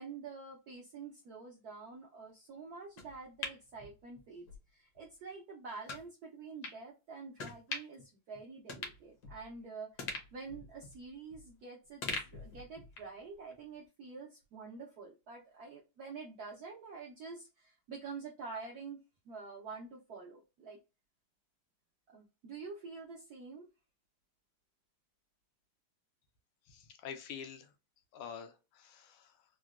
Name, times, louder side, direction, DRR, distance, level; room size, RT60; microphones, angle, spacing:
voice 1, 0.0-4.5 4.7-12.0 12.3-19.0 19.2-20.8 22.1-23.7, right 4 dB, 75° right, -1 dB, 0.9 m, -47 dB
sound 1, 3.0-4.6 5.0-5.1 5.9-6.1 6.6-6.8 7.4-8.1 8.4-8.5 8.7-9.6 10.0-11.6 12.0-13.2 13.5-13.6, left 3 dB, 65° left, 1.1 m, -43 dB
voice 2, 26.7-27.7 28.1-29.4, left 7 dB, 80° left, 7 dB, 1.4 m, -47 dB
3.9 x 2.1 x 2.3 m, 0.29 s
omnidirectional pair, 2.3 m